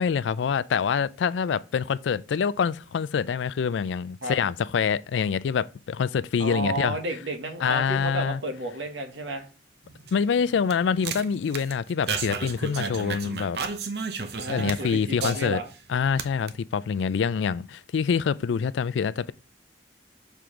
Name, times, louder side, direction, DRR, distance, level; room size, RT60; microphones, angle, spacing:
voice 1, 0.0-7.0 7.6-8.4 10.1-13.6 14.5-15.6 15.9-19.3, left 6 dB, 80° left, 0.3 m, -26 dB
voice 2, 6.4-9.5 12.7-12.9 14.4-15.6, right 2 dB, 85° right, 1.2 m, -32 dB
sound 1, 9.8-15.8 16.1-16.5, right 5 dB, 60° right, 0.7 m, -33 dB
6.9 x 4.6 x 3.7 m
head